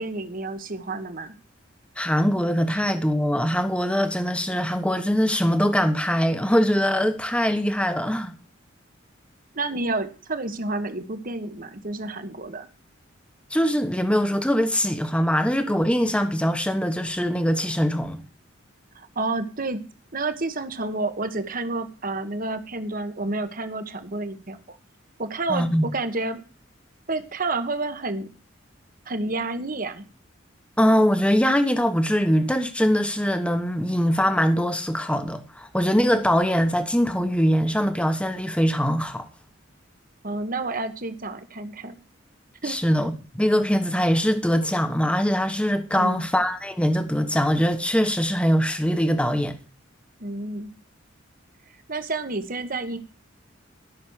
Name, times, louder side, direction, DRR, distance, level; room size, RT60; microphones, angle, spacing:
voice 1, 0.0-1.3 9.5-12.7 18.9-19.8 20.1-24.8 25.2-26.4 27.1-28.3 29.1-30.0 40.2-42.0 42.6-42.8 46.0-46.3 50.2-50.7 51.9-53.0, right 2 dB, 45° right, 1.4 m, -30 dB
voice 2, 2.0-8.3 13.5-18.2 25.5-25.9 30.8-39.3 42.6-49.5, equal, 5° left, 1.2 m, -22 dB
13.5 x 6.4 x 6.4 m
head